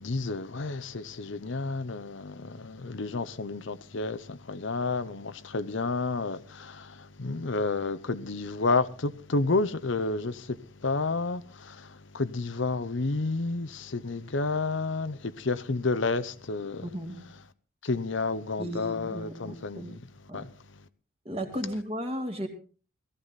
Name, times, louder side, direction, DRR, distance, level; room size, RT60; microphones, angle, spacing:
voice 1, 0.0-16.9 17.8-20.0 20.3-20.5, left 3 dB, 65° left, 0.8 m, -30 dB
voice 2, 16.8-17.2 18.6-19.9 20.3-20.4 21.2-22.5, equal, 30° right, 2.7 m, -35 dB
17.5 x 14.5 x 4.1 m
head